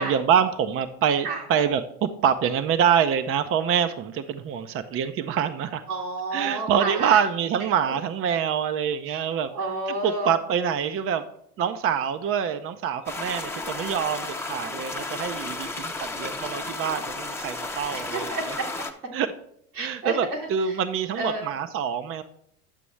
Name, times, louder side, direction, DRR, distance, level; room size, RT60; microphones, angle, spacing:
voice 1, 0.0-5.8 6.3-9.5 10.0-11.3 11.6-18.3 19.1-19.3 19.8-22.2, right 8 dB, 30° right, 10 dB, 0.6 m, -25 dB
voice 2, 5.9-7.2 7.9-8.0 9.1-9.2 9.5-10.3 15.5-15.6 17.9-18.8 19.7-20.4 20.7-20.8 21.2-21.5, right 2 dB, 85° right, -2 dB, 2.5 m, -30 dB
sound 1, 13.1-18.9, left 2 dB, 5° left, 0.8 m, -33 dB
10.0 x 6.8 x 3.1 m, 0.70 s
hypercardioid pair, 85°, 44 cm